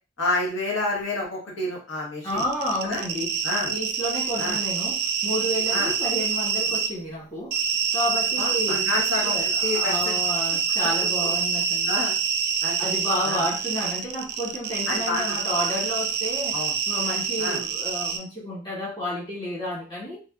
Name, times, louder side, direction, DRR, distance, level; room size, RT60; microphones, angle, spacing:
voice 1, 0.2-2.4 2.8-3.0 3.4-3.7 4.4-4.6 5.7-5.9 8.4-10.2 11.0-11.3 11.9-12.2 12.6-12.9 13.2-13.4 14.9-15.4 16.5-16.7 17.4-17.6, left 2 dB, 85° left, -3 dB, 0.9 m, -29 dB
voice 2, 2.2-3.3 3.7-7.6 7.9-11.9 12.8-16.6 16.9-20.2, equal, 20° left, -6 dB, 1.2 m, -30 dB
sound 1, 2.3-6.9 7.5-18.2, right 7 dB, 50° right, 0.3 m, -26 dB
2.6 x 2.4 x 2.4 m, 0.34 s
head